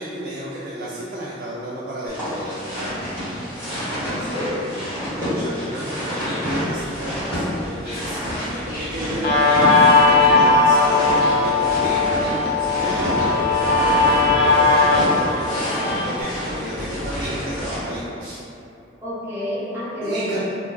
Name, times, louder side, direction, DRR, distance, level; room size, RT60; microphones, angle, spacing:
voice 1, 0.0-3.1 3.9-4.8 5.1-18.4 20.0-20.4, right 1 dB, 55° right, -7 dB, 0.3 m, -31 dB
sound 1, 2.1-17.8, equal, 10° left, 1.2 m, -28 dB
voice 2, 4.0-4.6 19.0-20.4, equal, 15° right, -11 dB, 0.7 m, -29 dB
Guitar, 9.2-16.2, left 3 dB, 50° left, 0.5 m, -18 dB
2.4 x 2.2 x 3.2 m, 2.7 s
head